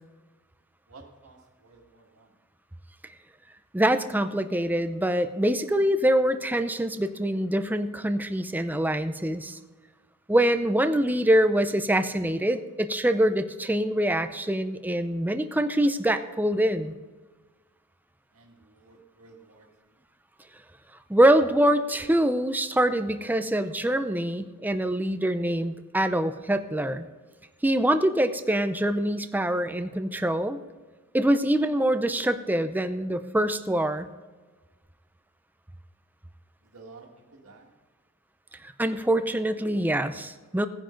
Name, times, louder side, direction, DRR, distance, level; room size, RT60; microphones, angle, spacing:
voice 1, 0.9-2.3 18.3-20.0 36.6-37.7, right 3 dB, 70° right, 0 dB, 2.1 m, -52 dB
voice 2, 3.7-9.6 10.3-16.9 21.1-27.0 27.6-30.6 31.1-34.1 38.8-40.7, right 1 dB, 10° right, 10 dB, 0.5 m, -24 dB
17.0 x 10.0 x 3.9 m, 1.4 s
head